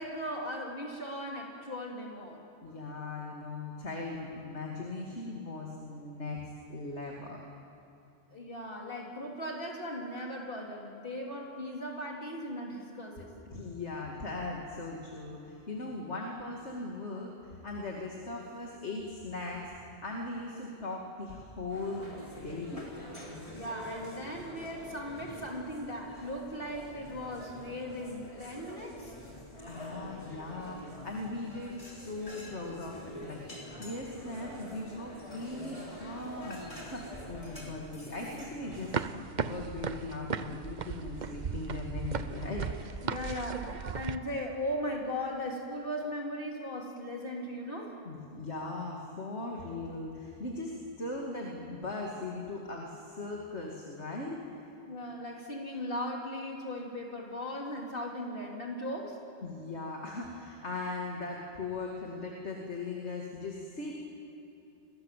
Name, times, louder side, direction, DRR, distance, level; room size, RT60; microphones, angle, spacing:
voice 1, 0.0-2.4 8.3-13.3 23.5-29.2 43.0-48.0 54.9-59.2, equal, 50° left, -1 dB, 3.4 m, -38 dB
voice 2, 2.6-6.4 6.7-7.4 13.5-22.9 29.7-39.0 39.3-43.0 48.0-54.6 59.4-63.9, left 2 dB, 75° left, -1 dB, 2.9 m, -39 dB
sound 1, 21.7-39.0, equal, 30° left, 4.6 m, -46 dB
sound 2, 38.7-44.2, right 6 dB, 45° right, 0.9 m, -36 dB
30.0 x 23.5 x 7.6 m, 3.0 s
omnidirectional pair, 1.2 m